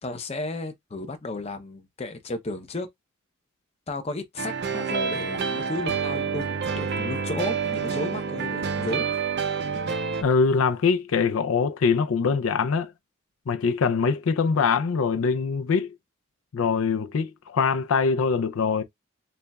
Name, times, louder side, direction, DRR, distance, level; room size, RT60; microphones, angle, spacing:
voice 1, 0.0-2.9 3.9-9.1, left 2 dB, 30° left, 0.7 m, -33 dB
sound 1, 4.4-10.2, right 6 dB, 55° right, 0.6 m, -28 dB
voice 2, 10.2-12.9 13.5-15.9 16.5-18.8, left 5 dB, 80° left, 0.4 m, -23 dB
6.6 x 2.3 x 2.3 m
head